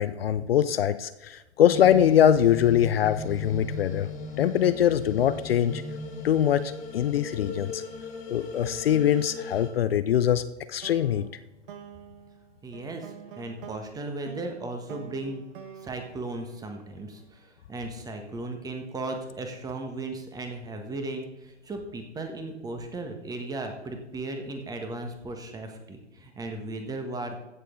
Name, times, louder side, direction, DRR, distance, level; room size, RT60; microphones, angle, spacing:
voice 1, 0.0-4.1 4.4-5.8 6.2-7.8 8.3-10.4 10.7-11.3, left 10 dB, 55° left, 13 dB, 0.6 m, -23 dB
sound 1, 1.7-9.7, left 3 dB, 20° left, 1.9 m, -37 dB
sound 2, 10.8-17.2, right 7 dB, 50° right, 1.3 m, -47 dB
voice 2, 12.6-15.4 15.8-27.4, right 2 dB, 10° right, 5 dB, 1.3 m, -36 dB
15.0 x 6.6 x 3.8 m, 1.0 s
figure-of-eight pair, 120°, 35 cm